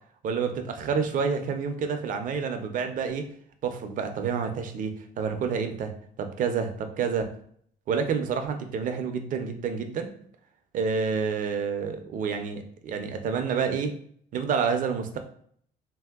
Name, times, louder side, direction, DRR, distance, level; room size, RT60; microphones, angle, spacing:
voice 1, 0.2-3.3 3.6-5.9 6.2-7.3 7.9-10.1 10.7-13.9 14.3-15.2, right 6 dB, 50° right, 7 dB, 0.5 m, -28 dB
3.1 x 2.7 x 2.3 m, 0.62 s
cardioid pair, 110°, 17 cm